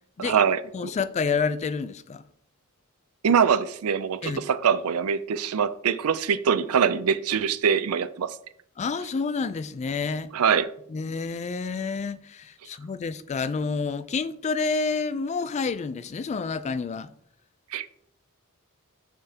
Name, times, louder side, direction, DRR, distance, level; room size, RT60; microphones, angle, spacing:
voice 1, 0.2-0.6 3.2-8.4 10.3-10.7 17.7-17.9, right 7 dB, 75° right, 0.5 m, -23 dB
voice 2, 0.7-2.2 4.2-4.4 8.8-10.3 10.9-17.1, left 4 dB, 30° left, 0.3 m, -29 dB
6.8 x 6.4 x 2.8 m
head